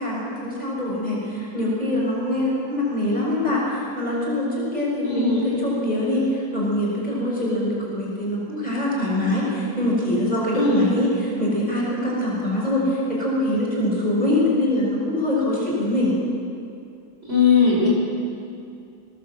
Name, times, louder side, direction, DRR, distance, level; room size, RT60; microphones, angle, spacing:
voice 1, 0.0-16.2, left 1 dB, 20° left, -5 dB, 6.1 m, -24 dB
voice 2, 5.0-5.4 10.5-10.9 17.3-17.9, left 4 dB, 30° right, -5 dB, 6.1 m, -18 dB
21.5 x 20.0 x 7.7 m, 2.5 s
omnidirectional pair, 2.2 m